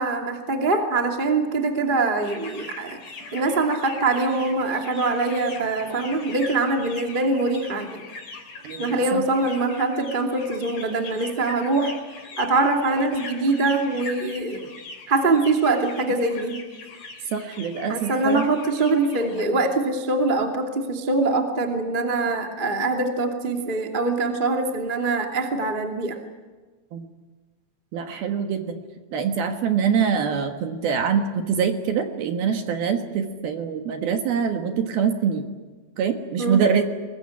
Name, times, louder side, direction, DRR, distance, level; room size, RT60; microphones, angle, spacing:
voice 1, 0.0-3.0 3.3-8.0 8.8-11.9 12.4-14.6 15.1-16.6 17.9-26.2 36.4-36.6, right 3 dB, 20° right, 3 dB, 1.3 m, -23 dB
sound 1, 2.2-19.5, left 3 dB, 40° left, 4.8 m, -41 dB
voice 2, 8.6-9.3 17.3-18.5 26.9-27.1 27.9-28.8 29.1-35.5 36.0-36.8, right 7 dB, 65° right, 6 dB, 2.9 m, -24 dB
22.0 x 22.0 x 9.6 m, 1.3 s
omnidirectional pair, 5.4 m